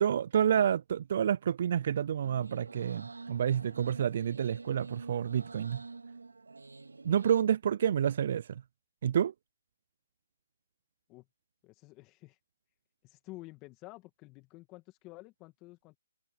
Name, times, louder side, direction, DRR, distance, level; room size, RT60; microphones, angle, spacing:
voice 1, 0.0-5.8 7.0-8.6 9.0-9.3, right 9 dB, 55° right, 0.3 m, -29 dB
sound 1, 2.2-7.4, right 3 dB, 90° right, 2.0 m, -47 dB
voice 2, 11.6-12.4 13.0-16.0, left 21 dB, 25° left, 2.3 m, -51 dB
hypercardioid pair, 140°, 0 cm